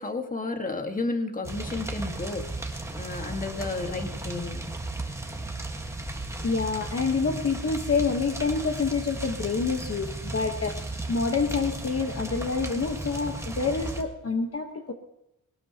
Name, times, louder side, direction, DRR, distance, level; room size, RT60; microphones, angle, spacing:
voice 1, 0.0-4.7, left 3 dB, 25° left, 5 dB, 1.6 m, -32 dB
sound 1, 1.4-14.0, right 2 dB, 10° right, 1.5 m, -35 dB
voice 2, 6.1-14.9, left 4 dB, 45° left, 4 dB, 1.2 m, -27 dB
20.5 x 18.0 x 2.9 m, 0.86 s
wide cardioid pair, 130°, 34 cm